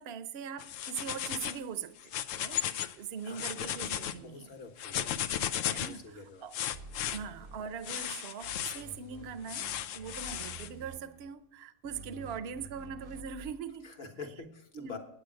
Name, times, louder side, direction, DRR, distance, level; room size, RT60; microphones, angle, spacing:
voice 1, 0.0-2.6 3.0-4.5 5.7-6.5 7.1-9.7 9.9-13.8 14.7-15.0, right 7 dB, 60° right, 12 dB, 0.9 m, -41 dB
sound 1, 0.6-1.6 2.0-2.9 3.3-4.1 4.8-6.0 6.5-7.2 7.8-8.8 9.5-10.7, left 10 dB, 90° left, 1.0 m, -35 dB
voice 2, 3.2-5.1 5.8-6.5 7.2-7.3 13.8-15.0, left 4 dB, 45° left, 3 dB, 1.5 m, -47 dB
sound 2, 6.7-8.1 8.4-11.3 11.8-13.6, right 3 dB, 40° right, 0.6 m, -50 dB
9.1 x 8.9 x 6.4 m, 0.77 s
omnidirectional pair, 1.3 m